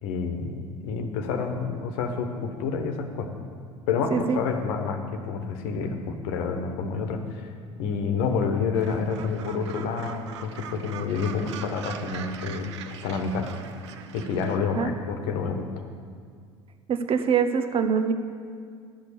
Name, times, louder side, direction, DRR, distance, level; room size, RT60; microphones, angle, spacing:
voice 1, 0.0-3.3 3.9-7.5 7.8-13.5 14.1-15.7, left 5 dB, 60° left, 6 dB, 1.2 m, -29 dB
Gull seagull, 8.7-14.6, right 8 dB, 75° right, 0.7 m, -41 dB
voice 2, 16.9-18.1, right 6 dB, 40° right, 8 dB, 0.9 m, -24 dB
12.0 x 6.4 x 6.9 m, 2.1 s
figure-of-eight pair, 70°, 15 cm